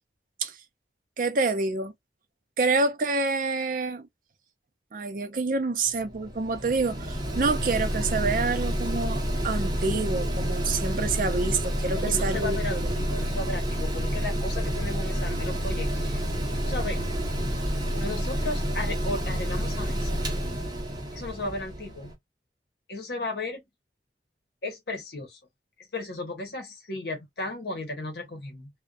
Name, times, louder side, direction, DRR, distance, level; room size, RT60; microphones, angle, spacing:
voice 1, 1.2-1.9 2.6-4.0 4.9-12.9, right 3 dB, 50° right, 0.5 m, -27 dB
Mechanical fan, 5.9-22.1, equal, 25° right, 0.8 m, -29 dB
voice 2, 11.9-16.2 16.6-17.0 17.9-20.2 21.1-22.2 22.9-23.6 24.6-25.4 25.9-28.7, left 2 dB, 65° left, 0.9 m, -35 dB
2.6 x 2.1 x 2.2 m
head